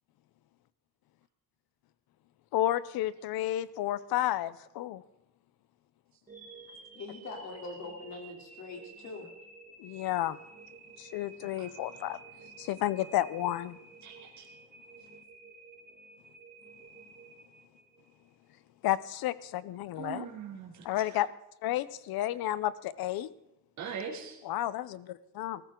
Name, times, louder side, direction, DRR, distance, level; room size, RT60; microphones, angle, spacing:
voice 1, 2.5-5.0 9.8-10.4 11.0-12.2 12.6-13.8 18.8-20.3 20.8-21.3 21.6-23.3 24.5-25.6, left 13 dB, 70° left, 18 dB, 0.8 m, -31 dB
sound 1, 6.3-18.4, right 4 dB, 20° right, 2.3 m, -52 dB
voice 2, 6.9-9.3, left 3 dB, 45° left, 2 dB, 3.4 m, -42 dB
voice 3, 14.0-14.5 20.0-21.2 23.8-24.4, right 6 dB, 50° right, -2 dB, 3.0 m, -41 dB
20.0 x 14.0 x 3.8 m, 0.86 s
cardioid pair, 175°, 37 cm